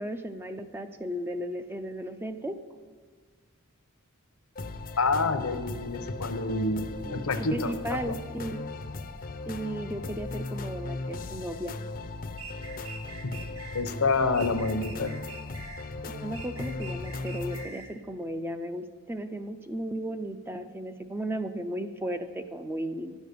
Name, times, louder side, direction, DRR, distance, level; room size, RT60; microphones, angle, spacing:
voice 1, 0.0-2.6 7.0-8.6 9.5-11.7 16.0-23.2, right 1 dB, 10° right, 8 dB, 0.5 m, -35 dB
sound 1, 4.6-17.7, left 3 dB, 40° left, 0.6 m, -38 dB
voice 2, 5.0-8.2 13.2-13.3 13.7-15.2, left 3 dB, 70° left, 10 dB, 0.8 m, -28 dB
sound 2, 12.4-13.8 14.3-15.9 16.3-17.9, right 4 dB, 70° right, 2.0 m, -44 dB
11.0 x 8.2 x 6.8 m, 1.5 s
head